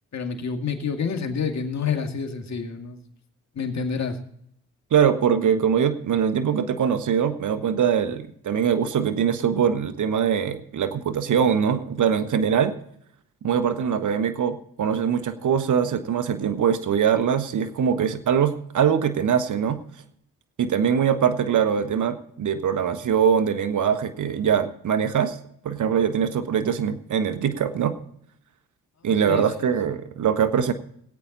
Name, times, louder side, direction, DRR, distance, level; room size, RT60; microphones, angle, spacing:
voice 1, 0.1-3.0 3.5-4.2 29.3-29.7, left 6 dB, 55° left, 5 dB, 2.3 m, -28 dB
voice 2, 4.9-12.7 13.4-19.8 20.6-25.4 25.6-27.9 29.0-30.7, right 8 dB, 65° right, 10 dB, 1.4 m, -22 dB
19.0 x 8.8 x 4.0 m, 0.69 s
supercardioid pair, 50°, 32 cm